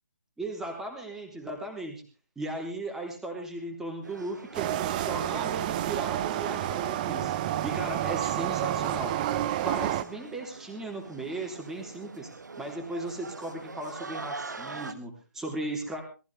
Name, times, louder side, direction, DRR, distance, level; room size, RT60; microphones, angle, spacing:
voice 1, 0.4-2.0 2.4-7.3 7.6-9.2 9.6-12.3 12.6-16.0, right 2 dB, 5° right, 2 dB, 3.3 m, -37 dB
sound 1, 4.0-14.9, right 4 dB, 70° right, 1.5 m, -44 dB
sound 2, 4.5-10.0, right 12 dB, 25° right, 0.8 m, -29 dB
18.5 x 15.0 x 3.5 m, 0.33 s
figure-of-eight pair, 140°, 10 cm